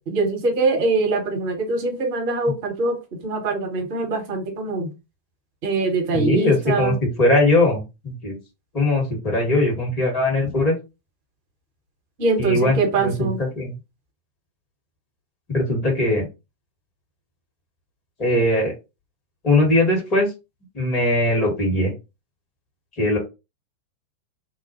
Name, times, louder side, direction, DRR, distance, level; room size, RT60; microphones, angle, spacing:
voice 1, 0.1-3.0 3.2-4.9 5.6-7.0 12.2-13.4, right 3 dB, 50° right, 2 dB, 1.1 m, -23 dB
voice 2, 6.1-8.4 8.7-10.8 12.4-13.7 15.5-16.3 18.2-18.7 19.4-20.3 20.7-21.9 23.0-23.2, left 1 dB, 35° left, 0 dB, 1.8 m, -20 dB
2.9 x 2.2 x 2.9 m, 0.26 s
figure-of-eight pair, 90°, 0 cm